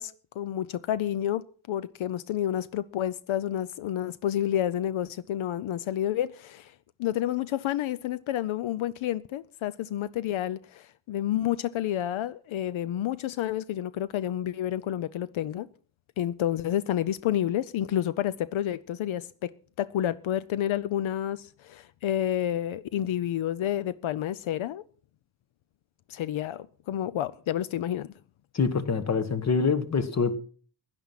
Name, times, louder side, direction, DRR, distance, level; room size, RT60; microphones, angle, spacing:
voice 1, 0.0-6.7 7.0-15.7 16.2-19.5 19.8-24.8 26.1-28.1, left 11 dB, 80° left, 0.7 m, -29 dB
voice 2, 28.5-30.4, left 5 dB, 35° left, 1.3 m, -25 dB
16.5 x 11.0 x 5.7 m
wide cardioid pair, 170°, 47 cm